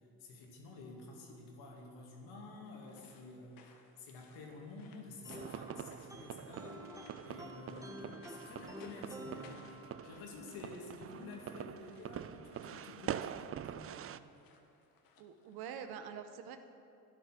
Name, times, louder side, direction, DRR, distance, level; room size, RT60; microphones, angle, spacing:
voice 1, 0.2-9.8 10.0-14.1, left 3 dB, 85° left, -1 dB, 2.3 m, -50 dB
sound 1, 2.6-15.9, left 4 dB, 65° left, 1.4 m, -64 dB
sound 2, 5.2-10.3, equal, 10° right, 1.5 m, -50 dB
sound 3, 5.3-14.2, right 10 dB, 40° right, 0.4 m, -45 dB
voice 2, 15.2-16.6, right 8 dB, 80° right, 9 dB, 1.0 m, -45 dB
12.0 x 10.0 x 5.9 m, 2.7 s
supercardioid pair, 75°, 37 cm